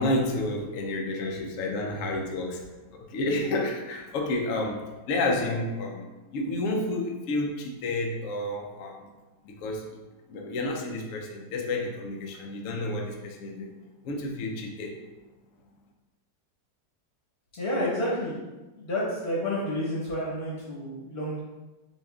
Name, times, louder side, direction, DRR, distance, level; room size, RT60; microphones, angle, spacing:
voice 1, 0.0-2.7 2.9-9.1 9.4-9.9 10.3-13.7 14.0-15.0, left 2 dB, 70° left, 1 dB, 0.8 m, -30 dB
voice 2, 17.6-18.3 18.7-21.4, left 1 dB, 40° left, -6 dB, 1.0 m, -30 dB
6.8 x 2.4 x 2.3 m, 1.1 s
omnidirectional pair, 1.9 m